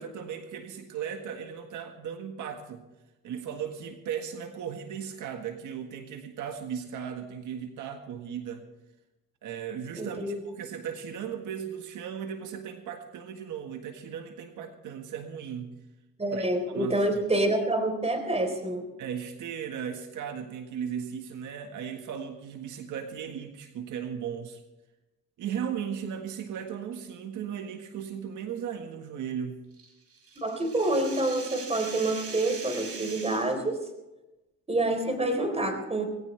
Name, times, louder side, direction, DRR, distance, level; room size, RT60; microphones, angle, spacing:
voice 1, 0.0-2.8 3.2-8.6 9.4-15.8 16.3-17.2 19.0-24.6 25.4-29.6, right 8 dB, 80° right, 5 dB, 1.7 m, -37 dB
voice 2, 10.0-10.4 16.2-18.8 30.4-33.8 34.7-36.1, right 2 dB, 20° right, 5 dB, 4.0 m, -27 dB
sound 1, 29.8-33.6, right 4 dB, 50° right, 5.2 m, -41 dB
19.5 x 17.5 x 3.4 m, 1.0 s
cardioid pair, 90°, 30 cm